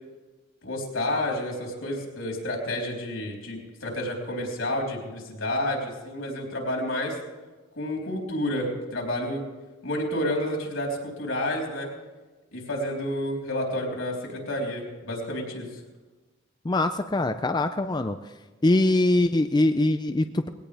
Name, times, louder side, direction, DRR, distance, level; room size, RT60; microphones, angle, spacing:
voice 1, 0.6-7.2 7.8-9.4 9.8-11.9 12.5-15.7, left 1 dB, 80° left, 0 dB, 3.7 m, -30 dB
voice 2, 16.7-18.2 18.6-20.5, left 2 dB, 20° left, 8 dB, 0.4 m, -23 dB
19.5 x 17.5 x 3.4 m, 1.2 s
head